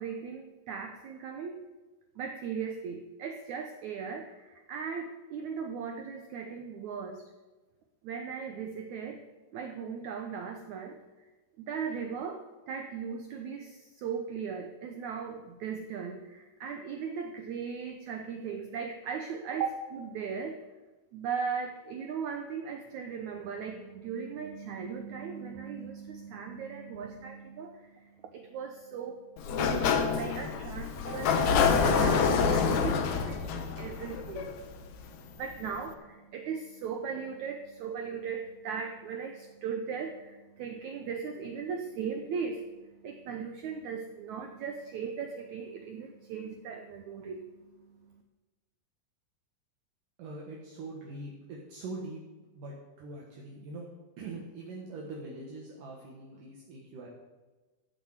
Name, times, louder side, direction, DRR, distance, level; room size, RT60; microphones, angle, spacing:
voice 1, 0.0-1.6 2.2-7.2 8.0-9.2 9.5-11.3 11.6-20.6 21.1-48.2, right 6 dB, 80° right, 5 dB, 1.7 m, -38 dB
Sliding door, 29.4-35.1, left 5 dB, 65° left, 1.9 m, -27 dB
voice 2, 50.2-52.2 52.5-53.9 54.2-57.1, right 2 dB, 65° right, -3 dB, 3.0 m, -43 dB
14.5 x 6.5 x 8.0 m, 1.2 s
omnidirectional pair, 4.5 m